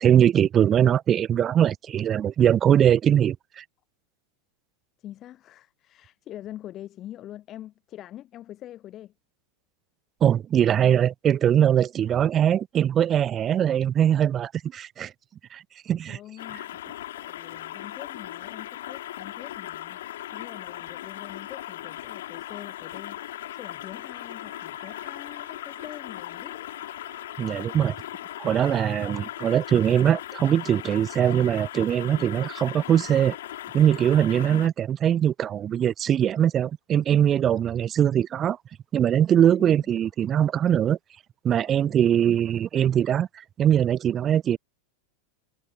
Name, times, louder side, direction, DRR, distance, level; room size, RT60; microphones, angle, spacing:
voice 1, 0.0-3.6 10.2-15.1 15.5-16.2 27.4-27.9 28.4-33.4 33.7-38.6 38.9-41.0 41.4-44.6, right 9 dB, 30° right, 0.3 m, -22 dB
voice 2, 5.0-9.1 16.1-16.8 17.2-26.7 34.5-34.7 39.6-39.9 41.5-42.0, left 13 dB, 40° left, 4.6 m, -44 dB
sound 1, 16.4-34.7, left 13 dB, 75° left, 0.6 m, -38 dB
Wind instrument woodwind instrument, 24.3-28.5, right 33 dB, 60° right, 7.1 m, -57 dB
hypercardioid pair, 110°, 0 cm